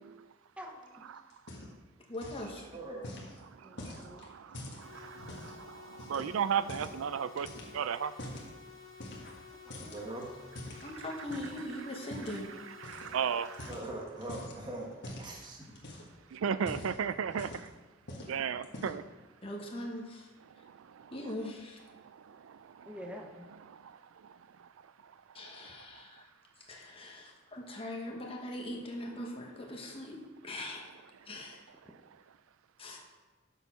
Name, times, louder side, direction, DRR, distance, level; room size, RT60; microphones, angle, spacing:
voice 1, 0.6-1.2 3.6-4.2 9.8-10.1 18.1-18.2 22.9-23.5, equal, 5° right, 3 dB, 0.8 m, -47 dB
sound 1, 1.3-1.9 2.1-2.5 3.0-5.6 6.0-7.0 7.4-8.5 9.0-9.4 9.7-11.6 12.1-12.4 12.8-13.1 13.4-14.6 15.0-15.3 15.7-16.2 16.5-17.7 18.1-18.3 18.6-19.1, left 1 dB, 55° left, 1.5 m, -45 dB
voice 2, 2.1-2.7 10.8-12.5 19.4-20.3 21.1-21.8 25.3-26.3 26.6-30.8 31.3-31.6 32.8-33.0, left 1 dB, 30° left, 0 dB, 1.3 m, -41 dB
voice 3, 2.7-3.1 9.9-10.3 13.6-14.9 15.2-15.8, right 2 dB, 20° right, -1 dB, 1.2 m, -41 dB
voice 4, 3.8-8.1 12.3-12.4 12.8-13.7 16.3-17.7 18.3-19.0 20.6-21.1 21.9-22.9 23.7-23.8, right 7 dB, 80° right, 14 dB, 0.4 m, -35 dB
sound 2, 4.8-13.8, left 6 dB, 75° left, 1.2 m, -53 dB
7.0 x 6.4 x 5.7 m, 1.3 s
head